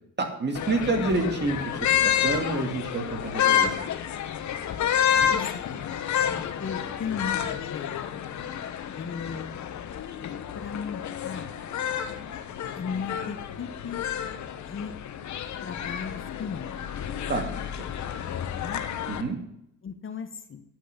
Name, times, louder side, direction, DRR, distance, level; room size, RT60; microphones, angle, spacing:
voice 1, 0.2-3.7 6.3-6.4 17.3-17.9 19.1-19.4, right 3 dB, 35° right, 3 dB, 2.7 m, -29 dB
sound 1, 0.5-19.2, left 9 dB, 70° left, 1.1 m, -29 dB
voice 2, 5.3-6.0 6.6-8.1 8.9-9.6 10.5-11.5 12.7-14.0 14.6-14.9 15.6-16.9 18.6-18.8 19.8-20.6, left 6 dB, 45° left, 9 dB, 1.1 m, -36 dB
10.0 x 6.1 x 8.4 m, 0.76 s
cardioid pair, 90°, 30 cm